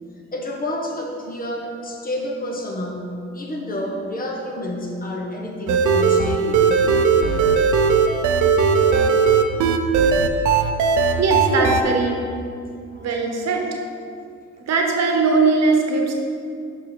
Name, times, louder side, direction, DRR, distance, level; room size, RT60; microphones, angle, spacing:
voice 1, 0.3-6.7 7.1-7.2 9.0-9.1 10.5-10.6 11.5-11.7 12.9-13.1, left 1 dB, 30° left, 1 dB, 1.2 m, -28 dB
sound 1, 5.7-11.8, right 5 dB, 75° right, 0.6 m, -18 dB
voice 2, 11.2-12.2 13.0-13.6 14.7-16.1, right 4 dB, 60° right, 2 dB, 1.1 m, -20 dB
6.1 x 5.6 x 4.5 m, 2.3 s
cardioid pair, 90°, 30 cm